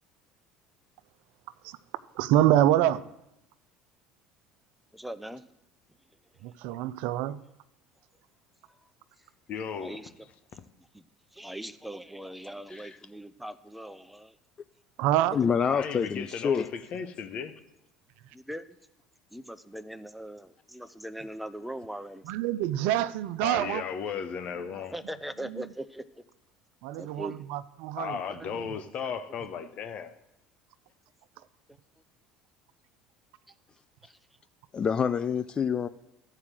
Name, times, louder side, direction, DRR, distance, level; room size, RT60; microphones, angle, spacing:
voice 1, 2.2-3.0 6.4-7.4 15.0-15.4 22.3-23.8 25.5-25.6 26.8-28.2, right 13 dB, 70° right, 0.5 m, -26 dB
voice 2, 4.9-5.4 9.8-10.1 10.9-11.0 11.3-14.4 18.3-18.6 19.3-22.2 24.9-26.0 27.0-27.5 34.0-34.2, right 1 dB, 5° right, 0.7 m, -40 dB
voice 3, 9.5-10.1 10.5-10.6 15.7-17.5 23.4-25.0 28.0-30.1, left 6 dB, 55° left, 1.0 m, -35 dB
voice 4, 15.3-16.7 34.7-35.9, left 7 dB, 35° left, 0.4 m, -27 dB
13.0 x 4.8 x 7.4 m
hypercardioid pair, 75°, 3 cm